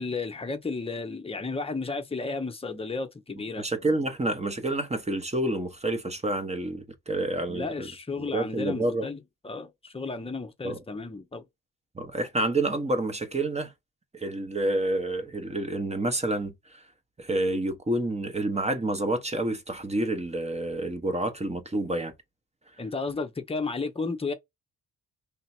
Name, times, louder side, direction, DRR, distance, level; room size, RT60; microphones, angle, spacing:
voice 1, 0.0-3.7 7.5-11.4 22.8-24.3, left 3 dB, 15° left, 0.8 m, -33 dB
voice 2, 3.6-7.9 8.2-9.1 10.6-10.8 11.9-13.7 14.1-16.8 17.2-22.1, right 2 dB, 20° right, 1.0 m, -28 dB
3.3 x 2.9 x 4.3 m
cardioid pair, 85°, 35 cm